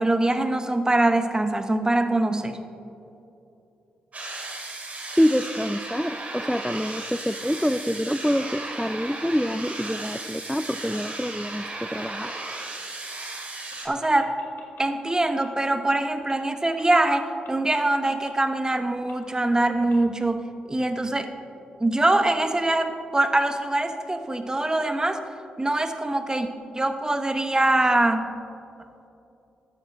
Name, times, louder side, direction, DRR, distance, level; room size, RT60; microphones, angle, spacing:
voice 1, 0.0-2.6 13.8-14.3 14.8-20.4 20.7-21.3 21.8-25.2 25.6-26.5 26.7-28.3, right 2 dB, 20° right, 8 dB, 1.0 m, -23 dB
sound 1, 4.1-13.9, right 2 dB, 45° right, 2.6 m, -35 dB
voice 2, 5.2-12.3, equal, ahead, 11 dB, 0.3 m, -26 dB
sound 2, 13.7-13.8 14.0-15.1 15.4-15.6 15.9-16.0 16.3-16.4 16.8-16.9 17.4-17.5 18.3-18.4 19.1-19.2 19.9-20.0, left 5 dB, 70° left, 1.7 m, -48 dB
13.0 x 10.0 x 3.0 m, 2.8 s
hypercardioid pair, 40°, 4 cm